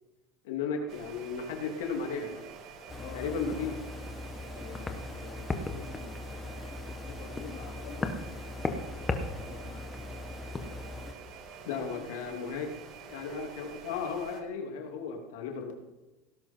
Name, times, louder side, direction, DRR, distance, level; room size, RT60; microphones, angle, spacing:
voice 1, 0.4-2.4 3.1-3.7 11.7-12.7 13.0-15.7, left 5 dB, 90° left, 2 dB, 2.7 m, -35 dB
Junction box fan blowing in hallway amb, 0.9-14.4, right 6 dB, 45° right, 2.3 m, -48 dB
sound 1, 2.9-11.1, left 3 dB, 15° left, 1.3 m, -37 dB
voice 2, 3.0-3.8 4.5-6.7 7.0-8.7 9.3-10.1 11.6-12.4, left 6 dB, 55° left, -3 dB, 2.9 m, -48 dB
17.5 x 11.0 x 4.4 m, 1.1 s
supercardioid pair, 135°, 0 cm